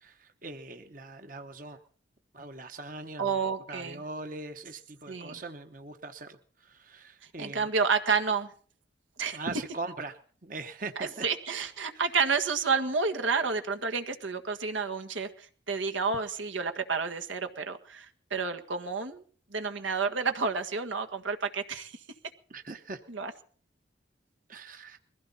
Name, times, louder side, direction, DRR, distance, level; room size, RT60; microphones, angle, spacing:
voice 1, 0.0-1.8 2.3-3.4 3.7-6.4 6.6-7.7 9.3-11.1 22.5-23.0 24.5-25.0, right 3 dB, 45° right, 6 dB, 1.1 m, -41 dB
voice 2, 3.2-4.0 5.1-5.4 7.4-8.5 9.2-9.5 11.0-19.2 19.5-21.9 23.1-23.3, right 5 dB, 85° right, 6 dB, 1.7 m, -30 dB
22.0 x 16.0 x 4.2 m, 0.44 s
head